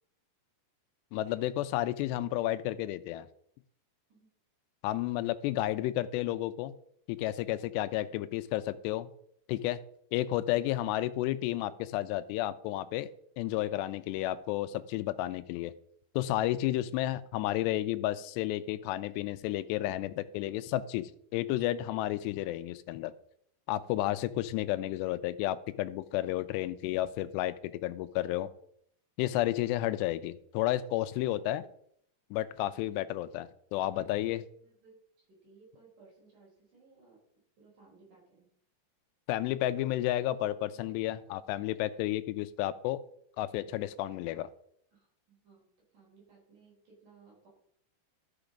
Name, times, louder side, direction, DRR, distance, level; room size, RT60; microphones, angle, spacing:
voice 1, 1.1-3.3 4.8-6.7 7.1-9.1 9.5-9.8 10.1-15.7 16.1-23.1 23.7-28.5 29.2-31.6 32.3-34.4 39.3-43.0 43.4-44.5, left 14 dB, 85° left, 13 dB, 2.7 m, -32 dB
voice 2, 33.9-37.2 37.6-38.5 44.9-47.5, right 4 dB, 45° right, -4 dB, 5.2 m, -61 dB
13.0 x 6.0 x 5.1 m, 0.69 s
omnidirectional pair, 5.1 m